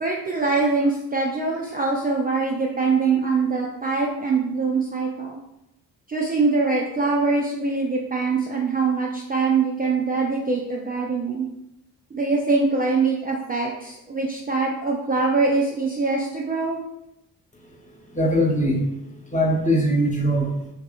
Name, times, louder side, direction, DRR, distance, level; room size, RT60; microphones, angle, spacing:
voice 1, 0.0-5.4 6.1-11.5 12.1-16.8, right 4 dB, 20° right, -2 dB, 0.4 m, -23 dB
voice 2, 18.1-18.9 19.3-20.6, equal, 15° left, -1 dB, 0.8 m, -21 dB
3.3 x 2.3 x 2.4 m, 0.87 s
hypercardioid pair, 40°, 44 cm